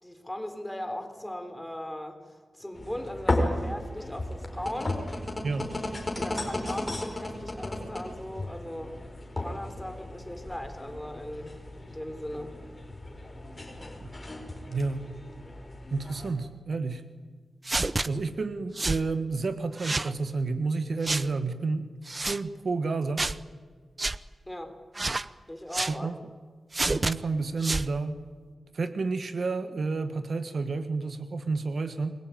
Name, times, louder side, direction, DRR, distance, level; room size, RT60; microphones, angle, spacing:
voice 1, 0.0-5.0 6.2-9.0 9.4-11.5 11.9-12.6 24.5-24.8 25.5-26.1, left 1 dB, 5° left, 6 dB, 3.5 m, -38 dB
sound 1, 2.7-16.3, left 1 dB, 20° left, 4.8 m, -35 dB
voice 2, 14.7-15.1 15.9-17.0 18.0-21.9 22.3-23.2 25.9-26.2 26.9-28.2 28.7-32.1, right 3 dB, 55° right, 10 dB, 1.4 m, -30 dB
sound 2, 17.6-18.1 18.8-19.0 19.8-20.1 21.0-21.3 22.1-22.4 23.2-23.4 24.0-24.2 24.9-25.3 25.7-26.0 26.7-27.1 27.6-27.9, right 2 dB, 30° right, 0.7 m, -29 dB
29.0 x 21.5 x 9.2 m, 1.5 s
wide cardioid pair, 120°, 0 cm